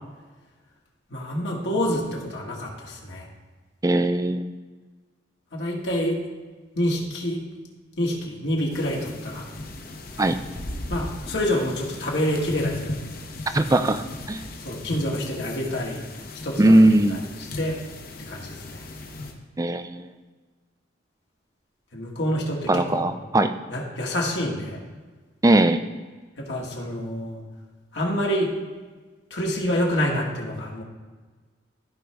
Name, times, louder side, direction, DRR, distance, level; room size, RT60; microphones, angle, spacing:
voice 1, 1.1-3.3 5.5-6.2 6.8-7.4 8.0-9.5 10.9-13.0 14.6-16.0 16.4-17.2 17.5-17.8 18.3-18.8 21.9-23.0 23.7-24.8 26.4-27.4 27.9-28.5 29.3-30.8, equal, 65° left, -2 dB, 1.8 m, -27 dB
voice 2, 3.8-4.5 10.2-10.4 13.5-14.4 16.6-17.2 19.6-20.1 22.7-23.5 25.4-25.8, right 1 dB, 20° right, 10 dB, 0.4 m, -19 dB
sound 1, 8.7-19.3, left 2 dB, 50° left, 1.0 m, -37 dB
14.5 x 5.0 x 3.4 m, 1.3 s
head